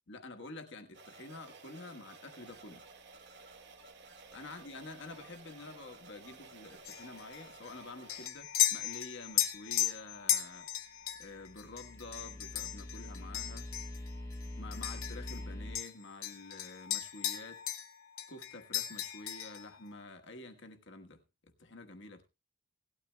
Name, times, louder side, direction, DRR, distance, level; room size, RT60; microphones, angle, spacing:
voice 1, 0.1-2.9 4.3-10.9 11.2-13.7 14.6-17.6 18.3-22.3, left 2 dB, 55° left, 1.3 m, -49 dB
sound 1, 0.9-8.3, right 3 dB, 50° right, 1.2 m, -54 dB
sound 2, 6.9-15.5 15.8-17.9 18.2-19.7, left 12 dB, 70° left, 1.0 m, -36 dB
sound 3, 11.2-15.8, left 1 dB, 15° left, 1.1 m, -44 dB
18.0 x 12.0 x 2.2 m
head